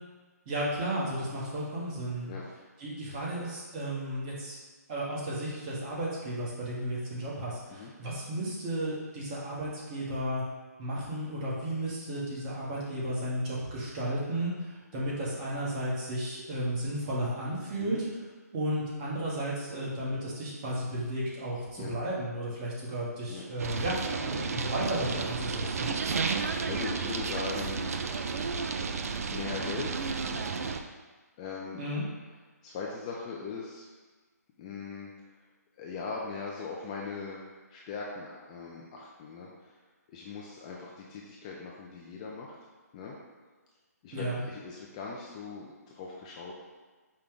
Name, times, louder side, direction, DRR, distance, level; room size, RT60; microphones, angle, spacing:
voice 1, 0.5-2.3 2.8-4.6 4.9-10.4 10.8-18.0 18.5-25.9 31.8-32.0 44.1-44.4, right 1 dB, 25° right, -6 dB, 1.1 m, -33 dB
sound 1, 23.6-30.8, right 4 dB, 60° right, 0.3 m, -32 dB
voice 2, 26.2-27.9 29.3-30.0 31.4-31.8 32.6-33.9 34.6-35.1 35.8-37.4 37.7-39.7 40.1-42.5 42.9-43.1 44.0-46.5, left 4 dB, 20° left, -3 dB, 0.3 m, -40 dB
5.1 x 2.2 x 3.6 m, 1.3 s
hypercardioid pair, 150°, 9 cm